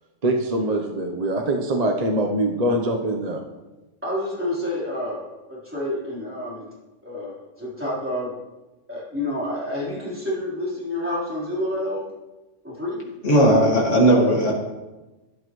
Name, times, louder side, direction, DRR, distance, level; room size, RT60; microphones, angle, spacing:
voice 1, 0.2-3.4, right 1 dB, 35° right, 1 dB, 1.0 m, -23 dB
voice 2, 4.0-6.7 7.0-8.3 8.9-12.0 12.6-13.0, left 1 dB, 10° right, -9 dB, 3.8 m, -29 dB
voice 3, 13.2-14.5, right 1 dB, 80° left, -3 dB, 2.3 m, -16 dB
12.5 x 11.5 x 3.1 m, 1.1 s
omnidirectional pair, 1.2 m